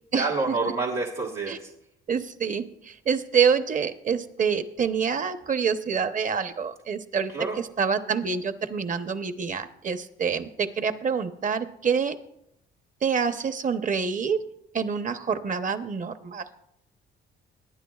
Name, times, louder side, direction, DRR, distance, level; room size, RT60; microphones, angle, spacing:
voice 1, 0.1-1.7 7.3-7.6, right 3 dB, 85° right, -3 dB, 1.6 m, -28 dB
voice 2, 2.1-7.3 7.8-12.2 13.0-14.4 14.7-16.4, right 6 dB, 40° right, 10 dB, 0.8 m, -26 dB
20.0 x 9.9 x 2.4 m, 0.78 s
cardioid pair, 90°, 20 cm